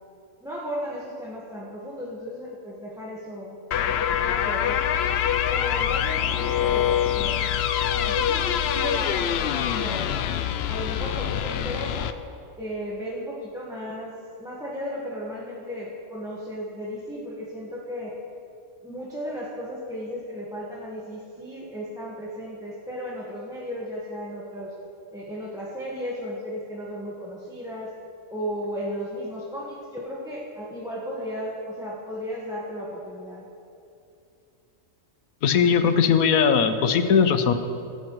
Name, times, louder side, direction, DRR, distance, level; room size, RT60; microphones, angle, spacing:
voice 1, 0.4-3.6 3.8-5.0 5.5-7.5 7.9-10.1 10.7-12.1 12.6-18.1 18.8-24.7 25.1-27.9 28.3-33.5, equal, 5° right, -6 dB, 1.3 m, -35 dB
sound 1, 3.7-12.1, left 10 dB, 65° left, 0.6 m, -25 dB
voice 2, 35.4-37.5, left 6 dB, 85° left, 8 dB, 1.2 m, -19 dB
21.5 x 9.6 x 3.1 m, 2.7 s
omnidirectional pair, 1.4 m